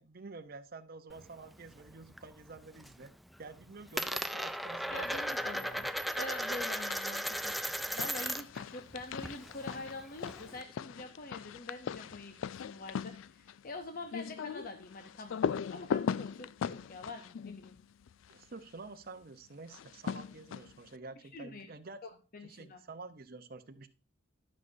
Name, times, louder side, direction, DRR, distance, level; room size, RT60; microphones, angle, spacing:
voice 1, 0.0-3.1 3.4-5.9 18.3-23.9, right 3 dB, 50° right, 9 dB, 0.8 m, -49 dB
Coin (dropping), 1.1-2.3 2.6-3.1 3.3-8.6 8.9-10.6, equal, ahead, 0.3 m, -36 dB
voice 2, 4.9-5.9 6.2-12.4 12.6-15.4 15.7-17.8 21.3-21.7 22.0-22.8, left 2 dB, 45° left, 6 dB, 0.8 m, -45 dB
sound 1, 6.6-7.1 7.4-18.4 19.7-20.9, left 7 dB, 75° left, 0.3 m, -39 dB
11.5 x 6.4 x 2.7 m, 0.35 s
head